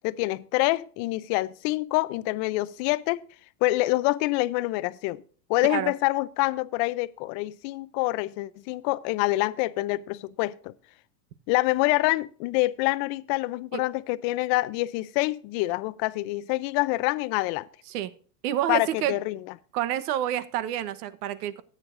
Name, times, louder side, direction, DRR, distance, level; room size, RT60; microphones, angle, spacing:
voice 1, 0.0-3.2 3.6-5.2 5.5-10.7 11.5-17.7 18.7-19.4, left 20 dB, 40° left, 0.5 m, -26 dB
voice 2, 18.4-19.1 19.7-21.6, right 12 dB, 65° right, 1.1 m, -28 dB
14.5 x 9.0 x 2.5 m
supercardioid pair, 140°, 49 cm